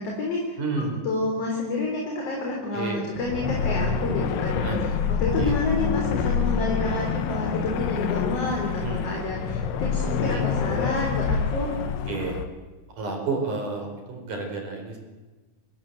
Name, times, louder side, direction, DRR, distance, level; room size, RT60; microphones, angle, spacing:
voice 1, 0.0-0.6 1.0-11.7, left 2 dB, 40° left, 0 dB, 4.6 m, -29 dB
voice 2, 0.6-1.0 2.7-3.0 4.6-4.8 5.3-5.5 8.8-9.1 10.3-10.5 12.1-12.4 13.0-15.0, right 3 dB, 50° right, 3 dB, 5.8 m, -30 dB
sound 1, 3.2-12.5, left 6 dB, 85° left, 3.7 m, -26 dB
26.5 x 19.5 x 8.1 m, 1.3 s
omnidirectional pair, 4.6 m